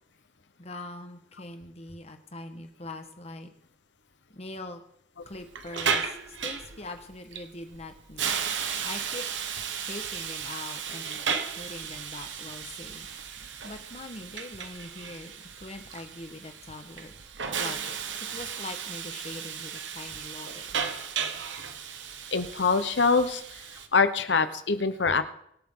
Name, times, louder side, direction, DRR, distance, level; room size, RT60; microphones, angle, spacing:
voice 1, 0.6-3.5 4.3-4.8 5.3-8.4 8.8-9.2 9.8-13.1 13.6-17.1 17.6-18.0 18.3-20.8, left 2 dB, 35° left, 6 dB, 1.4 m, -42 dB
Hiss, 5.3-23.9, right 7 dB, 90° right, 1.2 m, -35 dB
voice 2, 22.3-23.4 23.9-25.2, left 4 dB, 75° left, 10 dB, 1.1 m, -24 dB
24.5 x 8.6 x 3.9 m, 0.71 s
head